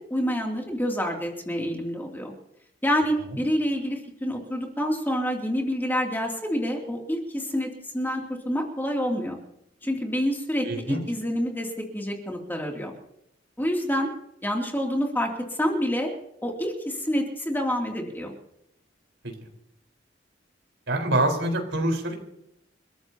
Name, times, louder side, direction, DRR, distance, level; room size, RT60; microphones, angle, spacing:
voice 1, 0.1-2.3 2.8-9.4 9.8-12.9 13.6-14.1 14.4-16.1 16.4-18.3, equal, 10° left, 0 dB, 2.7 m, -27 dB
voice 2, 10.6-11.0 19.4-19.5 20.9-22.1, right 1 dB, 80° right, 3 dB, 4.4 m, -25 dB
30.0 x 14.5 x 2.9 m, 0.79 s
head